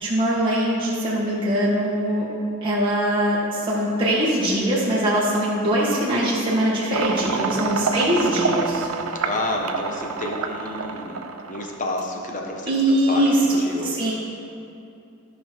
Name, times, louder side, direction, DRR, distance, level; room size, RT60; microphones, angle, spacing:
voice 1, 0.0-2.2 2.6-8.9 12.7-13.4 13.8-14.1, right 1 dB, 25° right, -8 dB, 1.5 m, -22 dB
sound 1, 6.9-11.9, right 5 dB, 80° right, 0.6 m, -28 dB
voice 2, 7.3-8.0 9.1-11.2 11.5-14.1, left 1 dB, 35° left, 1 dB, 1.1 m, -30 dB
13.5 x 5.6 x 4.5 m, 2.6 s
head